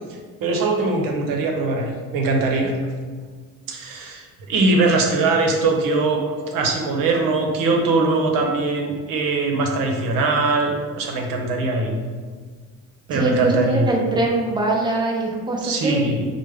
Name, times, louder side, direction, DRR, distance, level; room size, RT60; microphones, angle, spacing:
voice 1, 0.4-2.7 3.7-11.9 13.1-13.9 15.6-16.3, right 3 dB, 80° right, 1 dB, 0.8 m, -21 dB
voice 2, 13.1-16.0, right 2 dB, 15° right, -2 dB, 0.6 m, -22 dB
5.0 x 2.1 x 3.3 m, 1.5 s
cardioid pair, 135°, 33 cm